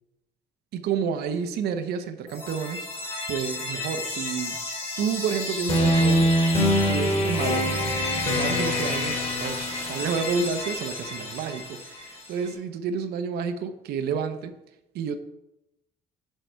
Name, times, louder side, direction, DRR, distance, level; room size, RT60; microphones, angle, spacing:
voice 1, 0.7-2.9 3.3-4.6 5.0-6.3 6.9-7.6 8.2-14.5 14.9-15.2, right 6 dB, 70° right, 7 dB, 0.8 m, -30 dB
sound 1, 2.3-12.2, equal, 35° left, 3.2 m, -26 dB
6.4 x 6.3 x 4.6 m, 0.89 s
cardioid pair, 110°, 17 cm